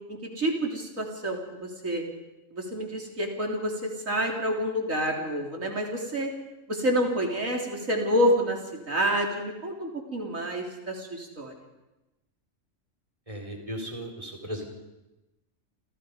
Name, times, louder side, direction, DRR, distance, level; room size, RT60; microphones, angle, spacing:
voice 1, 0.1-2.0 2.5-6.3 6.7-11.5, equal, 85° right, 0 dB, 4.1 m, -28 dB
voice 2, 13.3-14.7, equal, 25° right, 1 dB, 4.5 m, -36 dB
29.0 x 29.0 x 5.2 m, 1.0 s
omnidirectional pair, 1.3 m